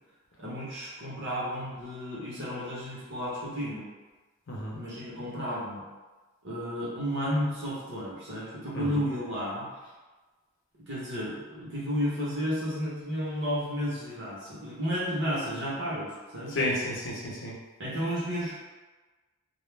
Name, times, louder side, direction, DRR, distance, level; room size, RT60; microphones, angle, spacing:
voice 1, 0.4-3.8 4.7-5.8 6.4-9.7 10.9-16.6 17.8-18.6, equal, 55° right, -7 dB, 0.9 m, -32 dB
voice 2, 16.5-17.5, left 1 dB, 55° left, -4 dB, 0.6 m, -31 dB
2.3 x 2.0 x 3.1 m, 1.3 s
head